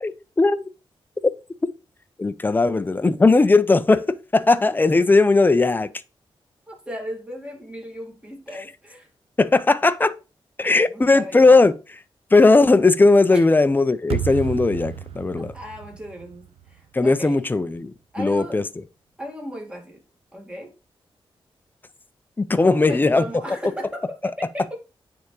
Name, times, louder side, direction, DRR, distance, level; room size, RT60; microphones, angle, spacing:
voice 1, 2.2-5.9 9.4-10.1 10.6-11.7 12.3-15.5 16.9-17.9 18.2-18.6 22.4-23.2, left 3 dB, 20° left, 0.5 m, -17 dB
voice 2, 6.7-9.1 10.9-11.5 13.3-13.5 15.4-17.4 18.1-18.6 19.2-20.0 20.3-20.7 22.6-24.7, equal, 10° right, 1.9 m, -36 dB
sound 1, 14.1-17.2, right 9 dB, 80° right, 0.5 m, -32 dB
9.1 x 3.5 x 3.1 m
cardioid pair, 90°, 10 cm